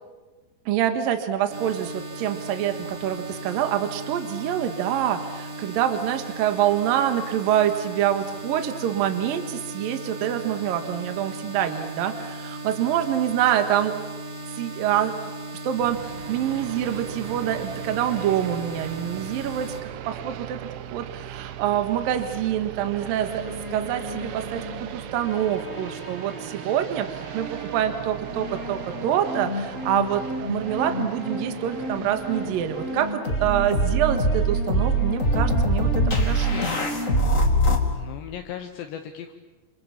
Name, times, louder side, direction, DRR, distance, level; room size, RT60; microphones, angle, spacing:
voice 1, 0.7-14.0 14.6-15.2 15.6-20.6 20.9-36.7, right 10 dB, 60° right, 7 dB, 2.9 m, -26 dB
sound 1, 1.5-19.8, right 2 dB, 40° right, 3.6 m, -37 dB
sound 2, 15.8-33.1, right 11 dB, 90° right, 3.6 m, -38 dB
sound 3, 23.3-24.9 25.2-26.6 27.3-37.8, right 1 dB, 25° left, 1.8 m, -26 dB
voice 2, 37.9-39.3, left 9 dB, 75° left, 5 dB, 3.2 m, -37 dB
28.0 x 26.0 x 7.2 m, 1.2 s
omnidirectional pair, 5.3 m